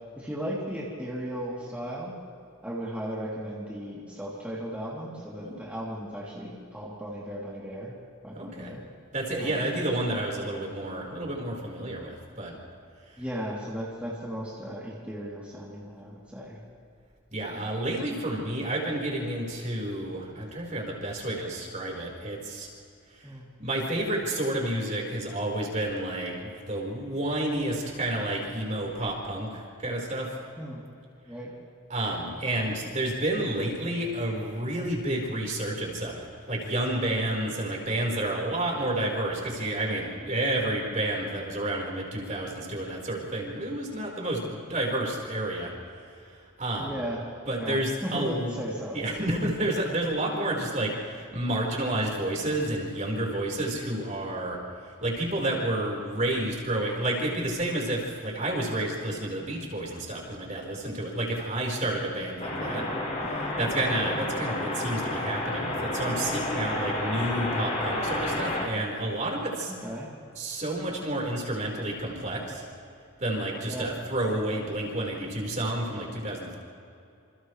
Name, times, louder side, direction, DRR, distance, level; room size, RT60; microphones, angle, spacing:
voice 1, 0.1-2.1 2.6-7.9 8.2-8.8 9.4-9.8 13.2-16.6 17.5-17.7 23.2-23.5 30.6-30.8 31.3-31.5 46.8-49.2 62.6-62.9 69.7-70.1 73.6-73.9, equal, 5° right, -7 dB, 3.2 m, -36 dB
voice 2, 8.3-8.7 9.1-12.6 17.3-22.7 23.1-23.3 23.6-30.3 31.9-45.7 46.6-46.9 47.5-48.5 48.9-54.6 55.0-62.8 63.3-69.7 70.3-72.6 73.2-76.6, right 1 dB, 35° right, -2 dB, 4.7 m, -30 dB
sound 1, 62.4-68.7, left 1 dB, 35° left, 4.6 m, -30 dB
28.0 x 28.0 x 3.3 m, 2.5 s
head